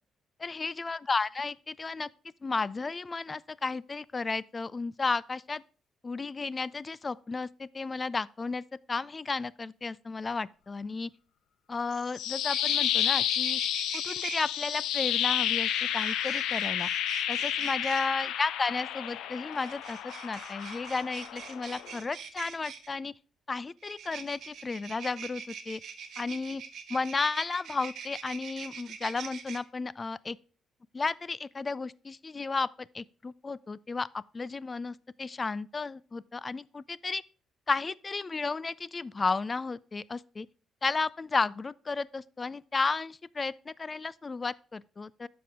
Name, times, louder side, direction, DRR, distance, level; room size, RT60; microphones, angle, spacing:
voice 1, 0.4-2.1 2.4-5.6 6.0-8.6 8.9-11.1 11.7-13.6 13.9-16.9 17.3-23.1 23.5-25.8 26.2-26.6 26.9-30.4 30.9-37.2 37.7-40.5 40.8-45.3, left 4 dB, 30° left, 0.3 m, -33 dB
sound 1, 11.9-22.0, left 10 dB, 85° left, 0.6 m, -31 dB
sound 2, 12.0-12.1 12.3-14.4 15.4-18.1 19.5-22.9 23.8-29.6, right 7 dB, 70° right, 0.9 m, -44 dB
9.2 x 6.0 x 3.6 m
cardioid pair, 90°, 0 cm